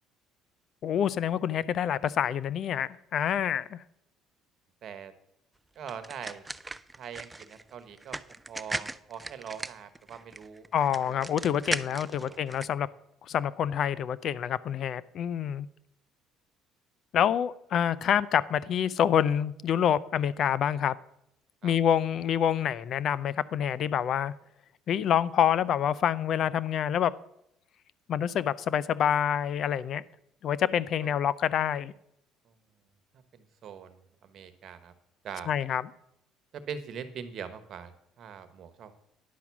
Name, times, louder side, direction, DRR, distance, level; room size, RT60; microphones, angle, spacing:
voice 1, 0.8-3.8 10.7-12.9 13.2-15.7 17.1-21.0 21.6-24.3 24.9-27.1 28.1-30.0 30.4-31.9 35.5-35.8, left 9 dB, 55° left, 19 dB, 0.4 m, -27 dB
voice 2, 4.8-5.1 5.8-6.4 7.0-8.2 8.5-10.7 11.1-11.3 12.2-12.4 21.6-21.7 31.0-31.1 33.3-34.9 35.2-35.5 36.7-39.0, right 7 dB, 55° right, 12 dB, 1.2 m, -42 dB
sound 1, 5.9-12.7, right 2 dB, 15° right, 0.4 m, -38 dB
10.5 x 5.9 x 7.1 m, 0.78 s
supercardioid pair, 80°, 0 cm